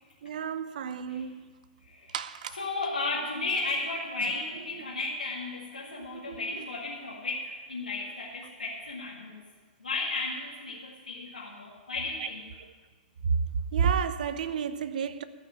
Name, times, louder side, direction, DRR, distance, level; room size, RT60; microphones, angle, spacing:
voice 1, 0.2-1.6 2.1-2.6 6.3-6.4 13.7-15.2, right 7 dB, 65° right, 0.7 m, -31 dB
voice 2, 1.8-2.2 2.5-9.4 9.8-12.5, left 3 dB, 90° left, 2.0 m, -34 dB
13.5 x 5.7 x 9.6 m
hypercardioid pair, 110°, 5 cm